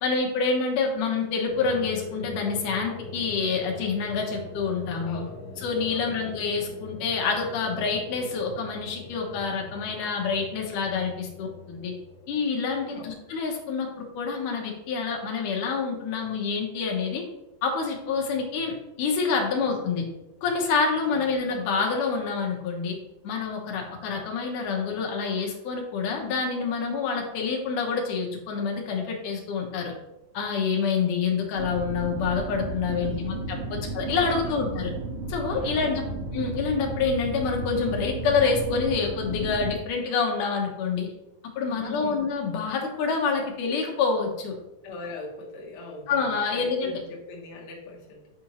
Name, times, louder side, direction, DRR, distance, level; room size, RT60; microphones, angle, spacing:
voice 1, 0.0-5.2 5.6-11.9 12.3-17.2 17.6-20.1 20.4-23.0 23.2-29.9 30.3-34.9 35.3-36.0 36.3-41.1 41.6-44.6 46.1-47.0, left 5 dB, 70° left, 1 dB, 2.2 m, -27 dB
sound 1, 1.4-13.5, left 2 dB, 50° left, 3.2 m, -42 dB
voice 2, 5.0-5.5 5.9-6.4 12.9-13.2 19.5-19.7 21.0-21.3 33.0-33.3 33.7-33.8 34.3-34.6 35.6-36.0 41.6-42.3 44.8-48.3, left 2 dB, 85° left, -2 dB, 1.2 m, -42 dB
sound 2, 31.5-39.7, right 2 dB, 85° right, 1.1 m, -33 dB
8.6 x 4.3 x 3.0 m, 0.95 s
omnidirectional pair, 4.3 m